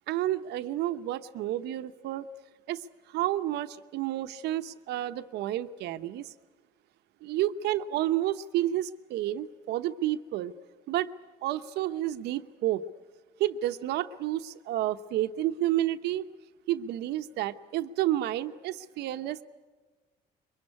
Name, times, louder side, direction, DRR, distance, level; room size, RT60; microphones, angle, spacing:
voice 1, 0.1-2.3 2.7-2.8 3.1-6.3 7.2-10.5 10.9-11.1 11.4-12.8 13.4-16.3 16.7-19.4, right 13 dB, 80° right, 10 dB, 1.0 m, -30 dB
23.0 x 22.5 x 9.8 m, 1.3 s
cardioid pair, 110°, 17 cm